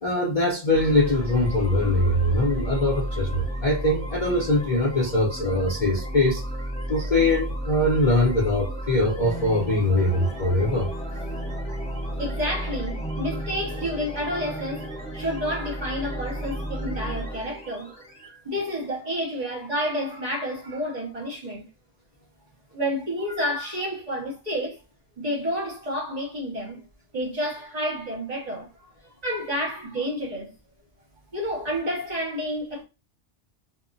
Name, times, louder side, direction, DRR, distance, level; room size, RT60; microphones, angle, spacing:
voice 1, 0.0-6.4 6.9-10.9, left 1 dB, 45° left, 0.5 m, -22 dB
sound 1, 0.7-18.3, right 1 dB, 5° left, 0.8 m, -32 dB
voice 2, 12.2-21.7 22.7-24.8 25.2-26.8 27.1-28.7 29.2-30.5 31.3-32.8, equal, 40° right, 0.7 m, -30 dB
2.2 x 2.0 x 3.7 m
omnidirectional pair, 1.2 m